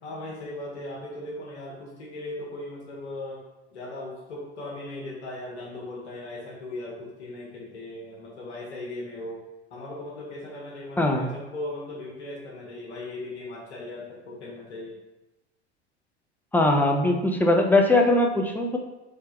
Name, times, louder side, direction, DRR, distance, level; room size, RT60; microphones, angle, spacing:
voice 1, 0.0-3.4 3.7-9.4 9.7-15.0, left 2 dB, 80° left, -3 dB, 1.4 m, -38 dB
voice 2, 11.0-11.3 16.5-18.8, left 2 dB, 5° left, 2 dB, 0.6 m, -21 dB
3.5 x 3.2 x 4.4 m, 1.0 s
hypercardioid pair, 80°, 33 cm